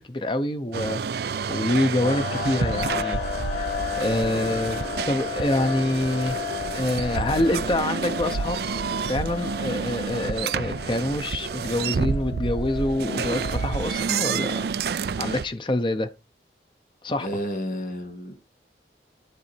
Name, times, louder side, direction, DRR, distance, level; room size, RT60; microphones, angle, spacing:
voice 1, 0.0-3.2 3.5-3.7 4.0-6.4 6.7-8.6 9.1-14.6 15.2-16.1 17.0-17.3, left 1 dB, 30° left, 0.7 m, -26 dB
sound 1, 0.7-15.5, right 6 dB, 65° right, 0.4 m, -29 dB
sound 2, 2.0-14.4, left 7 dB, 80° left, 3.8 m, -34 dB
voice 2, 17.2-18.3, equal, 55° left, 2.5 m, -31 dB
10.0 x 3.9 x 4.4 m
head